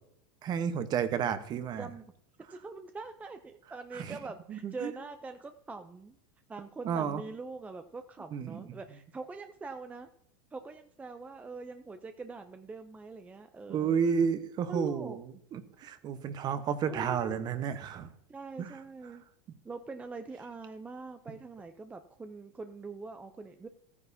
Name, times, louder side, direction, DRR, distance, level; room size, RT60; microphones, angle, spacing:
voice 1, 0.4-1.9 3.9-4.2 4.5-4.9 6.8-7.2 8.3-8.7 13.7-15.2 15.5-18.1 18.6-18.7, right 7 dB, 35° right, 11 dB, 1.0 m, -31 dB
voice 2, 2.5-6.1 6.5-10.1 10.5-14.0 14.7-15.2 16.8-17.5 18.3-19.2 19.6-23.7, right 3 dB, 10° right, 8 dB, 0.5 m, -43 dB
14.0 x 9.8 x 2.7 m, 0.72 s
supercardioid pair, 130°, 12 cm